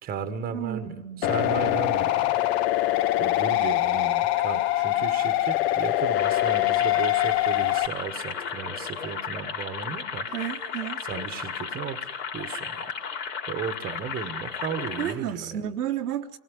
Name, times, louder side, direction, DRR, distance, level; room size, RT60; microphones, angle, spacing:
voice 1, 0.0-10.3 11.0-12.9 13.5-15.6, right 7 dB, 20° right, 10 dB, 1.3 m, -35 dB
voice 2, 0.5-1.3 10.3-11.0 15.0-16.4, right 10 dB, 85° right, 5 dB, 1.3 m, -32 dB
sound 1, 1.2-7.9, left 15 dB, 45° left, 0.8 m, -23 dB
sound 2, 6.1-15.1, left 6 dB, 65° left, 3.8 m, -34 dB
24.5 x 19.0 x 9.9 m, 1.2 s
hypercardioid pair, 130°, 45 cm